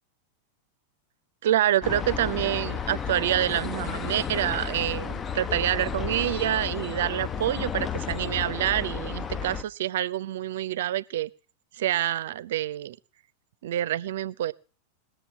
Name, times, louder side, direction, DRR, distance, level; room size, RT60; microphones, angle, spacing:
voice 1, 1.4-11.3 11.8-13.0 13.6-14.5, right 12 dB, 55° right, 0.6 m, -27 dB
sound 1, 1.8-9.6, left 6 dB, 20° left, 0.6 m, -32 dB
19.5 x 7.0 x 7.2 m
figure-of-eight pair, 90°, 0 cm